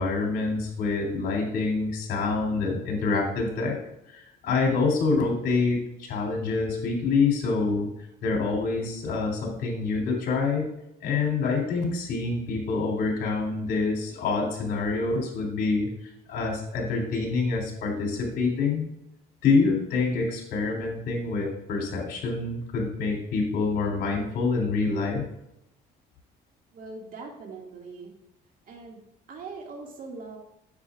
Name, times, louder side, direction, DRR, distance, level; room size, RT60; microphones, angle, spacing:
voice 1, 0.0-3.8 4.1-7.9 8.2-10.7 11.0-15.9 16.3-18.9 19.4-25.2, left 4 dB, 70° left, 0 dB, 3.2 m, -26 dB
voice 2, 26.7-28.1 28.7-29.0 29.3-30.4, right 4 dB, 55° right, 0 dB, 2.2 m, -41 dB
9.8 x 7.9 x 2.5 m, 0.81 s
cardioid pair, 110°, 17 cm